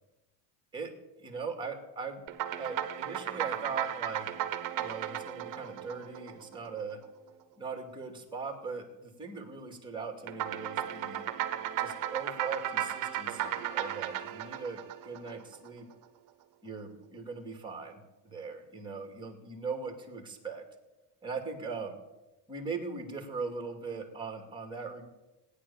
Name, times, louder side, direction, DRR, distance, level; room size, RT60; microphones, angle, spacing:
voice 1, 1.2-2.2 2.6-4.3 4.8-7.0 7.6-11.3 11.8-15.9 16.6-20.6 21.2-22.0 22.5-25.0, right 4 dB, 10° right, 4 dB, 2.4 m, -40 dB
sound 1, 2.3-6.9 10.3-15.7, right 11 dB, 45° right, 1.0 m, -35 dB
17.5 x 9.9 x 7.1 m, 1.0 s
cardioid pair, 150°, 46 cm